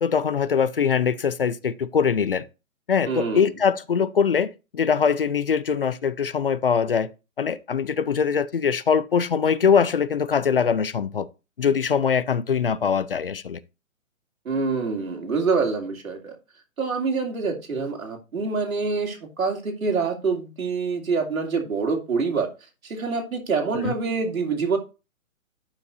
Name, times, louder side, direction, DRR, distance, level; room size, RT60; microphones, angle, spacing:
voice 1, 0.0-2.4 2.9-7.1 7.4-11.3 11.6-13.6 23.7-23.9, left 6 dB, 45° left, 0.4 m, -22 dB
voice 2, 3.1-3.4 14.4-16.4 16.8-22.5 22.8-24.8, right 4 dB, 85° right, 2.8 m, -26 dB
12.5 x 5.8 x 2.6 m
hypercardioid pair, 160°, 41 cm